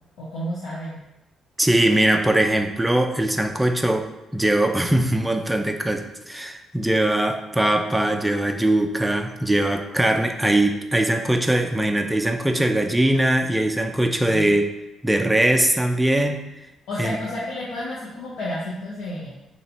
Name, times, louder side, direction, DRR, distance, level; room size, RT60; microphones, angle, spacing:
voice 1, 0.2-1.0 14.2-14.5 16.9-19.3, left 1 dB, 85° left, -8 dB, 0.8 m, -31 dB
voice 2, 1.6-14.7 15.0-16.4 17.0-17.2, right 1 dB, 5° right, 4 dB, 0.4 m, -21 dB
2.9 x 2.7 x 4.2 m, 0.96 s
cardioid pair, 90°, 0 cm